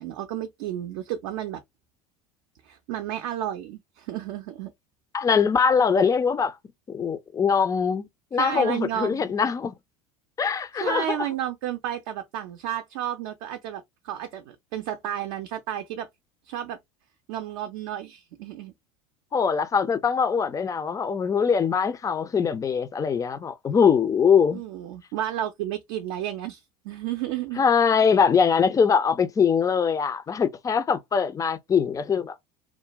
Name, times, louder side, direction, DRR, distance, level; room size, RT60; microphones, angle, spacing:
voice 1, 0.0-1.6 2.6-4.7 8.3-9.3 10.7-16.1 16.5-16.8 17.3-18.7 24.5-27.6, right 11 dB, 55° right, 0.5 m, -32 dB
voice 2, 5.1-6.5 6.9-9.7 10.4-11.1 19.3-24.6 27.6-32.3, left 6 dB, 20° left, 0.4 m, -22 dB
2.3 x 2.2 x 2.9 m
figure-of-eight pair, 75°, 19 cm